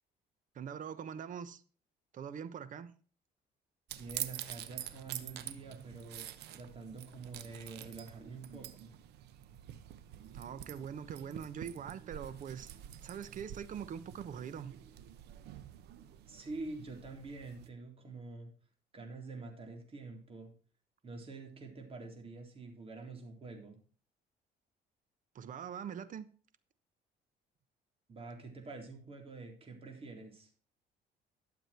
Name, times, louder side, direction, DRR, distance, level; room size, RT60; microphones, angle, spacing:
voice 1, 0.5-1.6 2.1-2.9 10.3-12.7 13.0-14.7 25.3-26.3, right 8 dB, 50° right, 1.0 m, -43 dB
sound 1, 3.9-17.7, right 12 dB, 80° right, 1.0 m, -47 dB
voice 2, 4.0-6.3 6.5-8.9 16.2-18.5 18.9-20.5 21.0-23.8 28.1-30.5, right 3 dB, 35° right, 3.8 m, -47 dB
12.5 x 7.4 x 4.4 m
cardioid pair, 110°, 17 cm